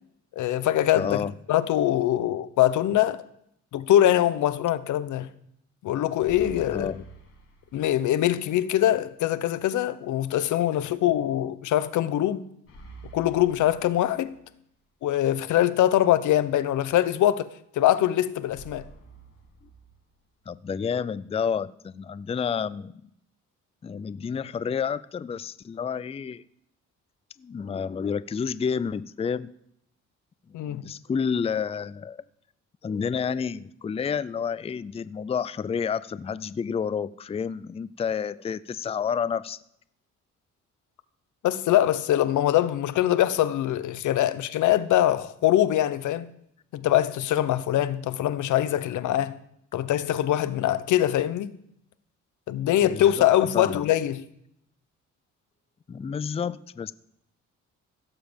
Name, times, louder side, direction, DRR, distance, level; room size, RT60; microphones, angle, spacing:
voice 1, 0.4-1.2 1.5-3.2 3.7-5.3 5.8-6.9 7.7-12.4 13.1-14.3 15.0-18.8 30.5-30.9 41.4-46.3 46.7-49.4 49.7-51.5 52.5-54.2, left 12 dB, 75° left, 0.9 m, -23 dB
voice 2, 0.9-1.3 6.7-7.0 20.5-23.1 23.8-26.4 27.4-29.5 30.7-32.2 32.8-39.6 52.8-53.3 53.5-53.9 55.9-56.9, left 6 dB, 20° left, 0.4 m, -30 dB
sound 1, 6.2-8.2 8.5-8.6 12.7-14.7 18.5-20.5, right 3 dB, 50° left, 4.1 m, -48 dB
16.5 x 7.5 x 5.2 m
cardioid pair, 90°, 30 cm